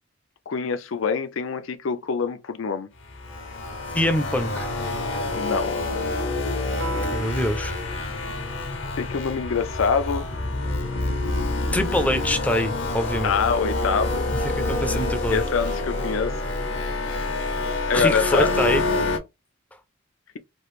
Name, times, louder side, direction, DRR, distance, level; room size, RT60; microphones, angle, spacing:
voice 1, 0.5-2.9 5.3-5.8 8.9-10.2 13.2-14.2 15.3-16.3 17.9-18.5, left 5 dB, 85° left, 0.5 m, -25 dB
sound 1, 3.0-19.2, left 2 dB, 65° left, 0.8 m, -27 dB
voice 2, 3.9-4.7 7.1-7.7 11.7-13.3 14.6-15.4 17.9-18.8, left 1 dB, 5° left, 0.4 m, -24 dB
Guitar, 6.8-9.2, right 5 dB, 70° right, 0.9 m, -40 dB
3.1 x 2.4 x 3.1 m
head